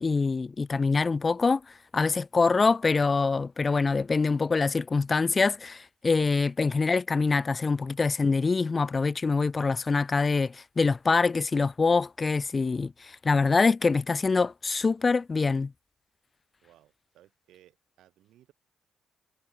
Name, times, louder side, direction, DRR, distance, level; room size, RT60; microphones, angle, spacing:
voice 1, 0.0-15.7, left 4 dB, 35° left, 0.7 m, -25 dB
voice 2, 16.6-18.5, right 13 dB, 80° right, 7.6 m, -60 dB
cardioid pair, 75°, 0 cm